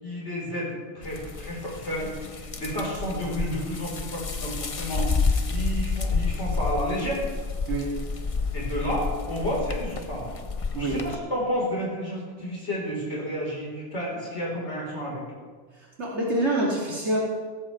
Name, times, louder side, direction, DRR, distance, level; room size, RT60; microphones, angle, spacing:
voice 1, 0.0-7.3 8.5-10.3 10.8-15.3, equal, 80° left, -5 dB, 4.3 m, -31 dB
sound 1, 1.0-11.2, left 4 dB, 35° left, 0.7 m, -30 dB
voice 2, 16.0-17.2, right 1 dB, 80° right, -5 dB, 2.7 m, -26 dB
16.5 x 15.0 x 3.2 m, 1.5 s
omnidirectional pair, 1.2 m